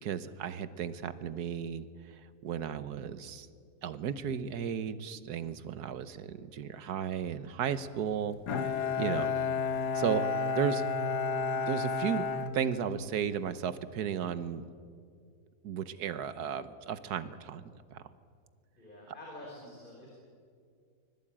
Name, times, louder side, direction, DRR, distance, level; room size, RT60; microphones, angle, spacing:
voice 1, 0.0-1.8 2.4-3.5 3.8-9.3 9.9-10.3 10.6-10.8 11.7-12.2 12.5-14.6 15.6-17.6 17.9-18.0, right 8 dB, 65° right, 13 dB, 1.4 m, -34 dB
Bowed string instrument, 8.5-13.3, left 5 dB, 65° left, 1.7 m, -32 dB
voice 2, 8.9-9.3 18.8-20.1, left 1 dB, 25° left, -3 dB, 4.8 m, -48 dB
24.5 x 20.5 x 8.8 m, 2.2 s
omnidirectional pair, 1.9 m